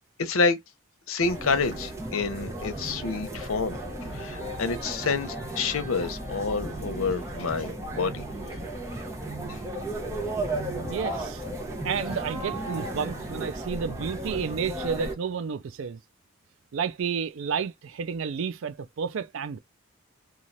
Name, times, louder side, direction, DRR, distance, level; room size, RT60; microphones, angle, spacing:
voice 1, 0.2-0.6 1.1-3.8 4.1-8.2 9.5-9.6, left 4 dB, 85° left, 0.7 m, -28 dB
sound 1, 1.2-15.1, right 1 dB, 15° right, 0.8 m, -34 dB
voice 2, 10.9-11.4 11.8-16.0 16.7-19.6, right 6 dB, 70° right, 0.4 m, -31 dB
3.1 x 2.4 x 2.6 m
head